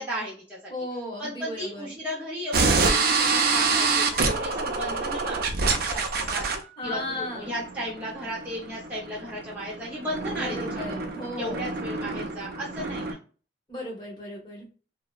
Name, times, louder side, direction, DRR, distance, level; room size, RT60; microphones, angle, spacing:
voice 1, 0.0-0.6 1.2-6.5 6.8-11.0 11.4-13.2, equal, 10° right, -7 dB, 0.6 m, -35 dB
voice 2, 0.7-1.9 6.8-7.5 10.3-11.6 13.7-14.7, left 1 dB, 25° left, -2 dB, 1.1 m, -35 dB
sound 1, 2.5-13.1, right 4 dB, 55° right, 0.4 m, -27 dB
2.7 x 2.1 x 2.2 m, 0.38 s
head